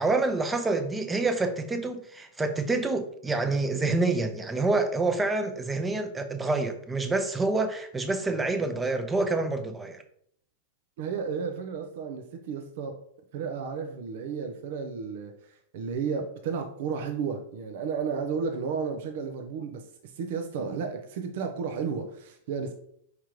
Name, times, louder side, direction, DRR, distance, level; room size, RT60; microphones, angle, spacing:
voice 1, 0.0-10.0, right 3 dB, 15° right, 0.7 m, -27 dB
voice 2, 11.0-13.0 13.3-22.7, right 5 dB, 65° right, 0.6 m, -33 dB
4.9 x 3.6 x 3.0 m
hypercardioid pair, 110°, 0 cm